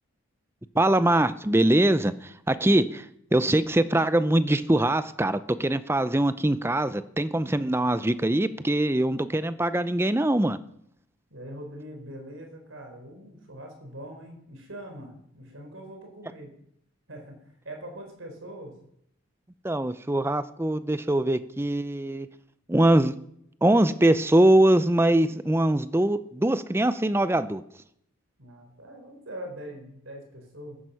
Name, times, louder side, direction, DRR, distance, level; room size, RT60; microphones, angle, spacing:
voice 1, 0.7-3.1 3.3-10.6 19.6-22.3 22.7-23.2 23.6-27.6, right 1 dB, 10° right, 14 dB, 0.5 m, -22 dB
voice 2, 11.3-16.5 17.1-18.8 28.4-30.8, right 1 dB, 75° right, 3 dB, 4.3 m, -42 dB
14.5 x 11.0 x 5.7 m, 0.72 s
head